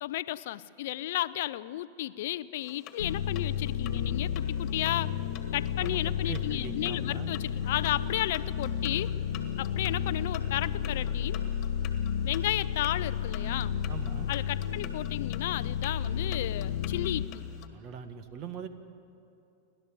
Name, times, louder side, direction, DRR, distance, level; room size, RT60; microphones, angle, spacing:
voice 1, 0.0-5.1 5.5-9.1 9.6-11.4 12.2-13.8 14.3-17.5, left 15 dB, 60° left, 17 dB, 0.5 m, -33 dB
sound 1, 2.6-17.7, left 9 dB, 40° left, 1.7 m, -50 dB
sound 2, 3.0-17.3, left 8 dB, 80° left, 1.3 m, -32 dB
voice 2, 5.8-7.3 13.9-14.3 17.7-18.7, right 8 dB, 45° right, 9 dB, 1.7 m, -41 dB
30.0 x 12.0 x 7.6 m, 2.7 s
hypercardioid pair, 100°, 0 cm